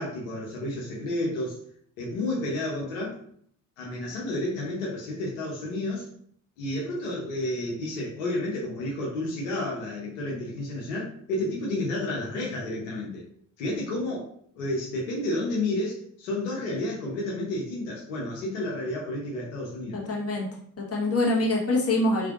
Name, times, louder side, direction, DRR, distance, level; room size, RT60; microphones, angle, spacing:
voice 1, 0.0-1.6 2.0-3.2 3.8-6.1 6.6-13.2 13.6-20.0, left 1 dB, 85° left, -3 dB, 0.9 m, -31 dB
voice 2, 19.9-20.5 20.8-22.3, left 2 dB, 40° left, -2 dB, 1.3 m, -25 dB
3.7 x 3.4 x 2.5 m, 0.62 s
hypercardioid pair, 40°, 38 cm